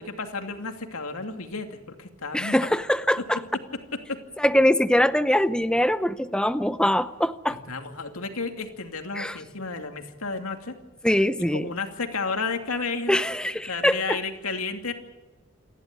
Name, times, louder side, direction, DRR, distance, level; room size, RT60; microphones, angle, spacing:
voice 1, 0.0-2.6 3.2-3.3 3.5-4.2 7.7-10.8 11.5-14.9, left 4 dB, 85° left, 5 dB, 2.6 m, -32 dB
voice 2, 2.3-3.4 4.4-7.6 9.2-9.4 11.0-11.7 13.1-14.2, left 1 dB, 5° left, 13 dB, 0.7 m, -23 dB
28.0 x 12.0 x 9.6 m, 1.2 s
head